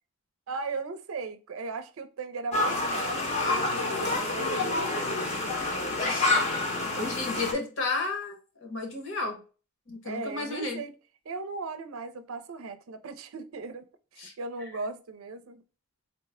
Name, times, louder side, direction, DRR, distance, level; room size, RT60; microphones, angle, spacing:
voice 1, 0.5-6.1 10.0-10.9 11.2-13.9 14.1-15.6, right 4 dB, 85° right, 0.5 m, -37 dB
sound 1, 2.5-7.5, left 2 dB, 30° left, 0.7 m, -28 dB
voice 2, 6.0-6.4 6.9-9.4 9.9-10.8 14.2-14.3, left 3 dB, 65° left, 1.1 m, -33 dB
3.9 x 2.2 x 3.4 m
head